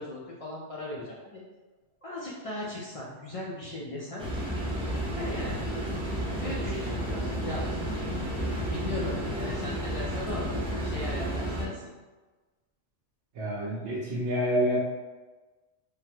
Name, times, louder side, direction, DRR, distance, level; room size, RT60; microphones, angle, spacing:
voice 1, 0.0-1.4 2.0-4.2 4.9-5.7 6.4-7.6 8.6-10.5 10.8-11.8, left 1 dB, 65° left, -5 dB, 0.3 m, -38 dB
sound 1, 4.2-11.7, equal, 5° right, 0.5 m, -31 dB
voice 2, 13.4-14.8, equal, 80° right, -7 dB, 1.0 m, -28 dB
3.7 x 2.1 x 2.7 m, 1.3 s
omnidirectional pair, 1.2 m